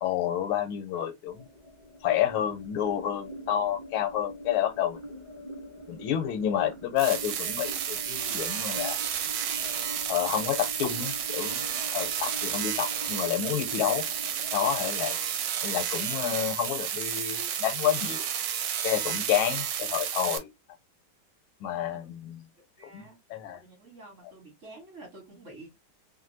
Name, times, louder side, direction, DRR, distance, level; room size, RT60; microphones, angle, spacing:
voice 1, 0.0-1.4 2.0-5.0 5.9-9.0 10.1-11.6 11.9-14.0 14.5-15.2 15.6-18.3 18.8-20.5 21.6-22.4 22.9-23.6, left 10 dB, 85° left, 1.5 m, -29 dB
sound 1, 1.3-16.2, equal, 25° right, 0.7 m, -44 dB
sound 2, 7.0-20.4, right 9 dB, 70° right, 1.2 m, -31 dB
voice 2, 16.1-16.5 21.9-22.2 22.6-23.2 23.5-25.7, right 2 dB, 45° right, 1.3 m, -50 dB
3.2 x 2.6 x 2.6 m
omnidirectional pair, 2.2 m